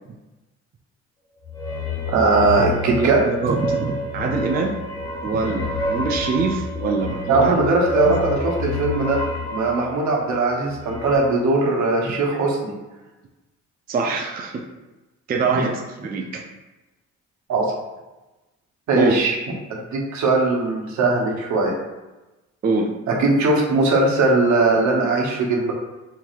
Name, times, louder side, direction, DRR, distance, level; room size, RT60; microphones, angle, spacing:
sound 1, 1.4-11.2, left 2 dB, 15° left, 0.9 m, -29 dB
voice 1, 2.1-3.2 7.3-9.2 9.5-12.7 15.5-15.6 17.5-17.7 18.9-19.4 19.7-21.8 23.1-25.7, right 3 dB, 70° right, -1 dB, 0.9 m, -20 dB
voice 2, 2.9-4.8 5.2-7.5 8.1-8.2 12.1-12.2 13.9-14.6 15.3-16.5 18.9-19.1 22.6-22.9, right 4 dB, 30° right, 2 dB, 0.4 m, -24 dB
3.7 x 2.9 x 2.4 m, 1.1 s
cardioid pair, 90°, 30 cm